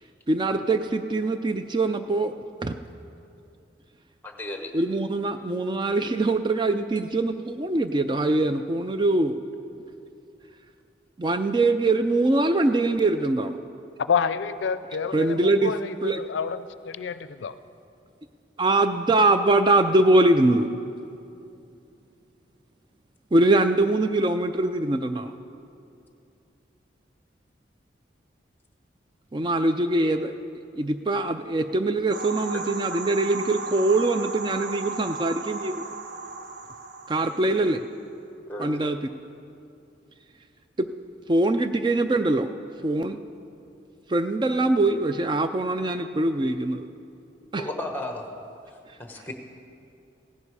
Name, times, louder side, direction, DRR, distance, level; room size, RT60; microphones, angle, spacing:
voice 1, 0.3-2.3 2.6-2.7 4.7-9.4 11.2-13.6 15.1-15.7 16.0-16.2 18.6-20.7 23.3-25.3 29.3-30.4 30.7-35.8 37.1-37.8 38.6-39.0 40.8-40.9 41.3-42.5 42.8-43.2 44.1-46.9 47.5-47.6, right 2 dB, 25° right, 8 dB, 0.3 m, -23 dB
voice 2, 4.2-4.7 32.5-32.6 38.5-38.8 47.6-48.3 49.0-49.3, left 1 dB, 10° left, 4 dB, 1.0 m, -34 dB
voice 3, 14.1-17.5, left 6 dB, 85° left, 13 dB, 0.4 m, -28 dB
sound 1, 32.1-37.8, right 4 dB, 70° right, 0.8 m, -35 dB
16.0 x 11.0 x 4.8 m, 2.6 s
head